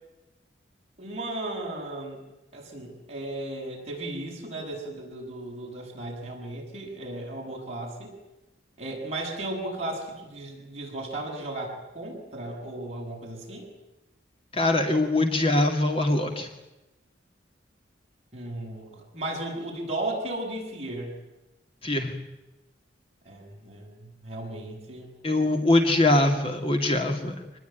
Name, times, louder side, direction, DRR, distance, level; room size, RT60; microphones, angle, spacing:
voice 1, 1.0-2.2 2.5-8.1 8.8-13.7 18.3-21.1 23.2-25.1, right 1 dB, 35° right, -1 dB, 7.9 m, -35 dB
voice 2, 14.5-16.5 21.8-22.2 25.2-27.4, left 2 dB, 30° left, 4 dB, 2.1 m, -23 dB
25.5 x 20.5 x 9.3 m, 0.99 s
head